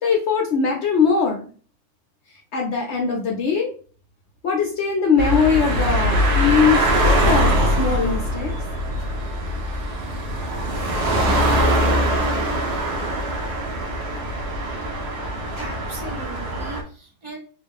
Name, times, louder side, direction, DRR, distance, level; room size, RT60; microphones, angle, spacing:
voice 1, 0.0-1.5 2.5-3.7 4.4-8.6, left 6 dB, 70° left, 1 dB, 0.6 m, -21 dB
sound 1, 5.2-16.8, equal, 75° right, 1.3 m, -22 dB
voice 2, 15.4-17.4, right 2 dB, 35° right, 0 dB, 0.5 m, -37 dB
3.4 x 2.4 x 3.5 m, 0.42 s
omnidirectional pair, 1.7 m